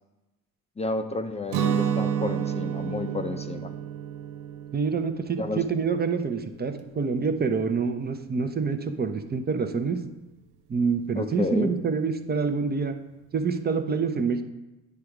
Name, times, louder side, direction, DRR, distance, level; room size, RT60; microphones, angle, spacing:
voice 1, 0.8-3.7 5.4-5.6 11.1-11.7, left 2 dB, 15° left, 7 dB, 0.6 m, -31 dB
Guitar, 1.5-7.3, right 8 dB, 65° right, 0.7 m, -31 dB
voice 2, 4.7-10.0 10.7-13.0 13.3-14.4, right 5 dB, 25° right, 8 dB, 0.7 m, -26 dB
9.5 x 3.4 x 4.9 m, 1.0 s
hypercardioid pair, 65°, 42 cm